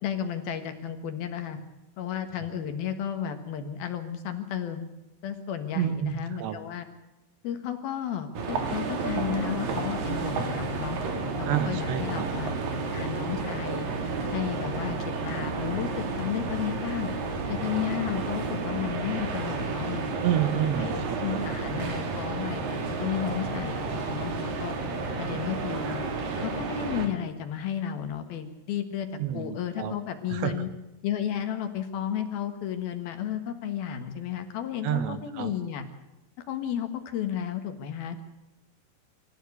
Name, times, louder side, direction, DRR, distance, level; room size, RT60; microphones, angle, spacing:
voice 1, 0.0-1.6 2.0-4.9 5.2-6.9 7.4-11.0 11.4-12.5 12.9-13.9 14.3-17.1 17.5-20.1 20.8-24.7 25.2-26.0 26.4-29.1 29.3-30.7 31.0-35.9 36.5-38.2, left 9 dB, 65° left, 8 dB, 3.0 m, -33 dB
voice 2, 5.7-6.6 11.5-12.3 20.2-21.4 29.2-30.0 30.3-30.7 34.8-35.5, right 10 dB, 75° right, 11 dB, 3.6 m, -29 dB
sound 1, 8.3-27.1, right 3 dB, 55° right, 3.9 m, -31 dB
25.5 x 14.5 x 8.4 m, 0.95 s
omnidirectional pair, 5.2 m